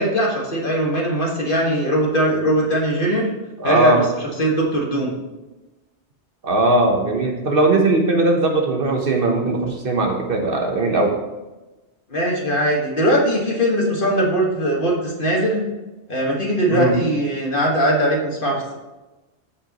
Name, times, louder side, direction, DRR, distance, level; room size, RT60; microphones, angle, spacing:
voice 1, 0.0-3.3 3.6-4.0 4.4-5.1 12.1-15.6 16.1-18.7, right 1 dB, 50° left, -2 dB, 1.8 m, -20 dB
voice 2, 3.6-4.0 6.4-11.2 16.7-17.0, right 2 dB, 55° right, 2 dB, 1.1 m, -19 dB
13.0 x 5.1 x 3.0 m, 1.1 s
omnidirectional pair, 1.2 m